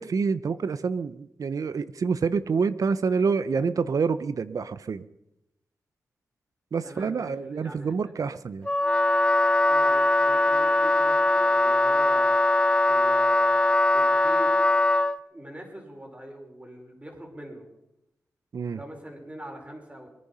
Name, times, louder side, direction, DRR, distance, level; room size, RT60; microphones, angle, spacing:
voice 1, 0.0-5.0 6.7-8.7 18.5-18.8, right 5 dB, 70° right, 15 dB, 0.7 m, -27 dB
voice 2, 6.8-8.1 9.6-12.4 12.9-14.5 15.3-17.7 18.7-20.1, right 1 dB, 20° right, 2 dB, 5.4 m, -43 dB
Wind instrument woodwind instrument, 8.7-15.2, left 2 dB, 15° left, 0.6 m, -21 dB
22.5 x 10.5 x 5.6 m, 0.89 s
cardioid pair, 50°, 6 cm